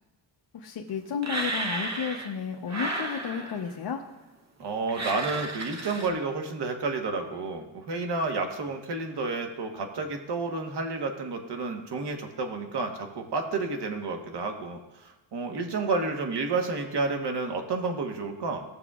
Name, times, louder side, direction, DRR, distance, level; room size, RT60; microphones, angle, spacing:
voice 1, 0.5-4.0, left 7 dB, 55° left, 0 dB, 0.9 m, -32 dB
sound 1, 1.2-2.4 2.7-3.7 4.9-6.1, right 2 dB, 35° right, 1.0 m, -33 dB
voice 2, 4.6-18.6, right 3 dB, 55° right, 4 dB, 1.3 m, -30 dB
16.5 x 6.9 x 2.4 m, 1.0 s
cardioid pair, 125°, 47 cm